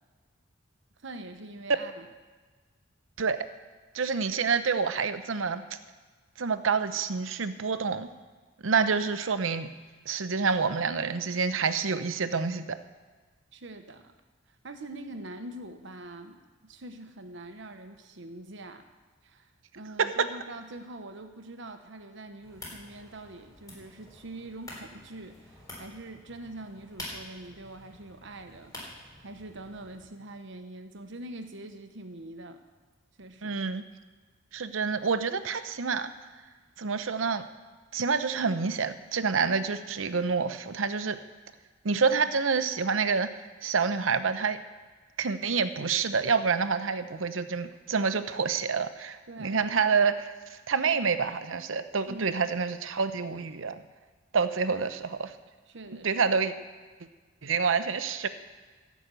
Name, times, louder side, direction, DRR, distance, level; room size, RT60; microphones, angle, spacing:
voice 1, 1.0-2.1 13.5-14.1 14.5-18.8 19.2-29.0 29.2-32.6 33.2-33.6 49.3-49.6 52.1-52.5 54.7-54.8 55.7-56.4, right 2 dB, 65° right, 7 dB, 1.0 m, -44 dB
voice 2, 3.9-5.6 6.4-8.1 8.6-9.7 10.1-12.8 20.0-20.3 33.4-33.8 34.5-36.1 36.8-37.4 37.9-41.2 41.8-43.3 43.6-44.6 45.2-50.3 50.7-53.8 54.3-55.3 56.0-56.5 57.4-58.3, right 5 dB, 80° right, 11 dB, 0.8 m, -27 dB
sound 1, 22.4-30.0, left 1 dB, 20° left, 3.9 m, -47 dB
15.5 x 6.1 x 8.2 m, 1.4 s
head